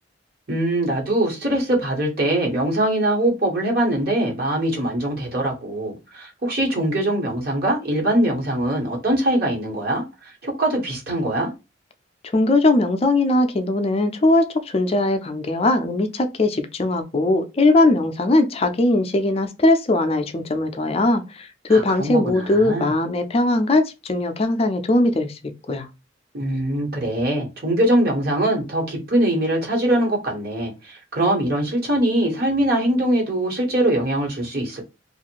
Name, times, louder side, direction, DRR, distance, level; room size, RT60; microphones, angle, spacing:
voice 1, 0.5-11.5 21.7-22.9 26.3-34.8, right 1 dB, 55° right, 1.3 m, -22 dB
voice 2, 12.3-25.3 25.7-25.9, left 2 dB, 30° left, 0.4 m, -20 dB
2.6 x 2.4 x 2.9 m
head